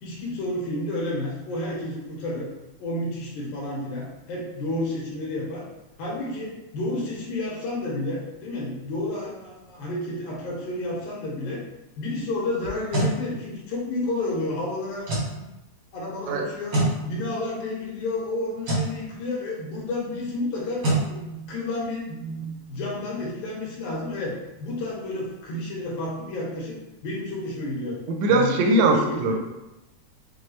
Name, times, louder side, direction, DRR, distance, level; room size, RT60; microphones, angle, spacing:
voice 1, 0.0-2.5 2.8-5.7 6.0-11.6 12.0-15.4 15.9-20.8 21.1-28.0 28.3-29.3, left 2 dB, 80° left, -3 dB, 2.5 m, -31 dB
sound 1, 12.6-13.2 15.0-15.3 16.7-17.0 18.6-18.9 20.8-21.1, right 2 dB, 50° right, 1.0 m, -23 dB
voice 2, 28.1-29.3, right 2 dB, 75° right, 2 dB, 1.7 m, -21 dB
5.8 x 2.3 x 3.2 m, 0.97 s
omnidirectional pair, 3.4 m